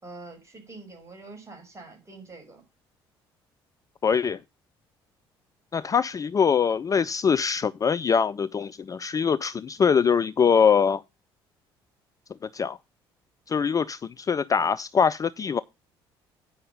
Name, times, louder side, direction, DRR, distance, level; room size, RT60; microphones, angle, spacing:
voice 1, 0.0-2.6, right 3 dB, 20° right, 5.5 m, -45 dB
voice 2, 4.0-4.4 5.7-11.0 12.5-12.8 13.5-15.6, left 6 dB, 25° left, 0.4 m, -23 dB
9.4 x 5.4 x 5.4 m
figure-of-eight pair, 50°, 13 cm